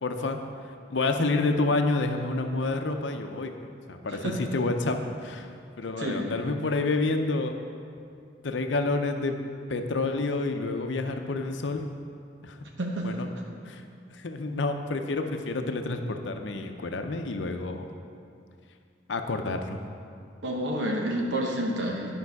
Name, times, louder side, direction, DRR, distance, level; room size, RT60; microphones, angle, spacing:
voice 1, 0.0-0.4 0.6-3.5 3.9-5.5 5.8-7.5 8.4-9.4 9.7-11.8 12.4-12.6 13.0-13.3 13.6-17.9 19.1-19.8, left 3 dB, 75° left, 6 dB, 0.6 m, -29 dB
voice 2, 12.8-13.1 20.4-22.1, right 1 dB, 70° right, 0 dB, 1.0 m, -29 dB
10.5 x 5.4 x 4.8 m, 2.4 s
head